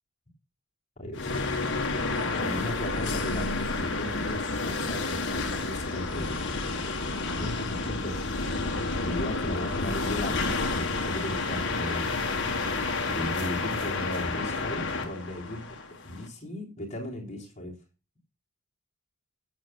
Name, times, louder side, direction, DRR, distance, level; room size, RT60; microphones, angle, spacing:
voice 1, 1.0-1.4 2.4-6.3 7.3-8.2 9.0-12.0 13.1-15.8 16.0-17.8, left 1 dB, 30° left, -2 dB, 3.6 m, -36 dB
sound 1, 1.1-16.3, left 3 dB, 55° left, 2.0 m, -30 dB
22.0 x 7.5 x 2.3 m, 0.30 s
head